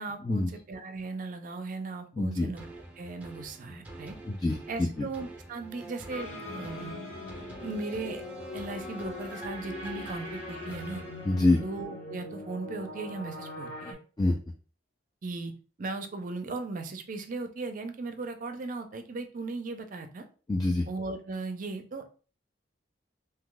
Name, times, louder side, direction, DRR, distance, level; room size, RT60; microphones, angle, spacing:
voice 1, 0.0-2.6 3.0-4.2 4.7-7.0 7.6-8.2 8.5-11.0 11.6-14.0 15.2-15.5 15.8-20.3 20.9-22.1, right 3 dB, 45° right, 7 dB, 0.5 m, -37 dB
voice 2, 2.2-2.5 4.2-5.1 11.2-11.6 14.2-14.4 20.5-20.9, left 2 dB, 20° left, 1 dB, 0.3 m, -26 dB
sound 1, 2.6-12.0 12.4-12.5, right 2 dB, 10° right, 0.7 m, -45 dB
sound 2, 6.1-13.9, left 2 dB, 45° left, 0.9 m, -41 dB
2.7 x 2.3 x 3.7 m, 0.38 s
head